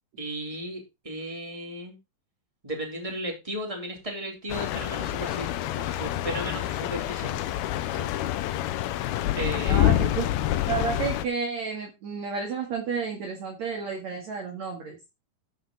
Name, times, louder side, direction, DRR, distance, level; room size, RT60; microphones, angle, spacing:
voice 1, 0.2-2.0 2.6-5.5 5.7-7.4 7.9-8.1 9.4-10.2, equal, 10° right, 1 dB, 3.6 m, -35 dB
sound 1, 4.5-11.2, left 13 dB, 85° left, 2.7 m, -27 dB
voice 2, 9.7-10.2 10.7-15.0, right 6 dB, 55° right, 2 dB, 2.8 m, -31 dB
13.5 x 5.9 x 4.1 m, 0.25 s
omnidirectional pair, 4.3 m